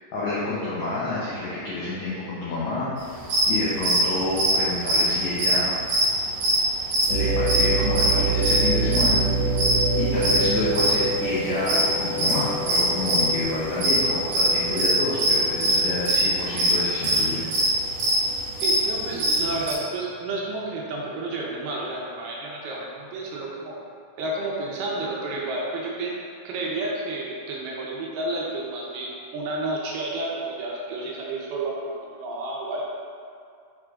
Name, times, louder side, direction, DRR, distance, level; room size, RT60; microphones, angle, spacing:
voice 1, 0.1-2.9 3.5-5.7 7.1-9.2 10.0-17.4, left 2 dB, 80° left, -8 dB, 1.6 m, -28 dB
sound 1, 3.2-3.5 3.8-4.0 4.3-6.1 6.4-6.6 6.9-7.2 7.5-8.1 8.4-8.6 8.9-9.8 10.2-11.0 11.3-13.4 13.7-14.0 14.3-19.7, right 1 dB, 60° right, 3.0 m, -21 dB
sound 2, 7.1-17.0 17.5-17.6 18.3-18.6, right 3 dB, 60° left, 2.3 m, -27 dB
voice 2, 18.6-23.8 24.2-26.2 26.4-32.8, right 2 dB, 75° right, -4 dB, 2.7 m, -31 dB
6.5 x 4.9 x 3.7 m, 2.3 s
omnidirectional pair, 4.7 m